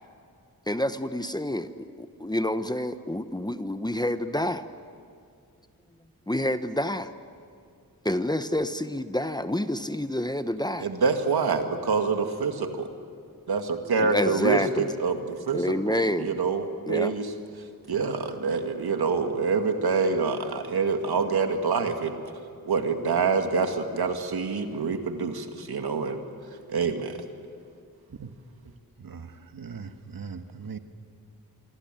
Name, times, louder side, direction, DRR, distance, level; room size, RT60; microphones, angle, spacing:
voice 1, 0.7-1.7 2.0-4.6 6.3-7.1 8.0-10.9 14.0-14.9 15.5-16.3 16.9-17.2, left 1 dB, 10° left, 10 dB, 1.1 m, -28 dB
voice 2, 10.8-12.9 13.5-15.6 15.9-17.3 17.9-22.1 22.7-26.2 26.7-27.2, right 4 dB, 90° right, 6 dB, 2.1 m, -26 dB
voice 3, 29.0-30.8, right 5 dB, 65° right, 8 dB, 1.6 m, -40 dB
26.0 x 23.5 x 9.1 m, 2.3 s
wide cardioid pair, 75°, 37 cm